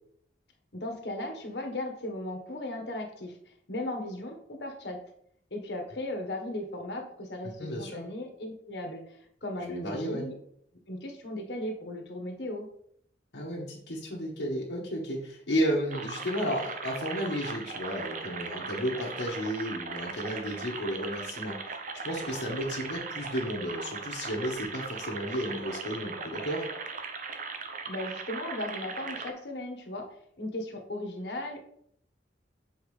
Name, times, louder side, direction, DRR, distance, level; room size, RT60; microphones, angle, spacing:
voice 1, 0.7-5.0 5.5-10.3 10.9-12.7 27.9-30.0 30.4-31.6, left 1 dB, 70° left, 3 dB, 1.2 m, -37 dB
voice 2, 7.6-8.0 9.7-10.2 13.3-21.6 22.0-26.7, equal, 85° left, -4 dB, 1.2 m, -33 dB
sound 1, 15.9-29.3, right 4 dB, 45° right, 0.7 m, -38 dB
7.2 x 4.5 x 3.2 m, 0.68 s
head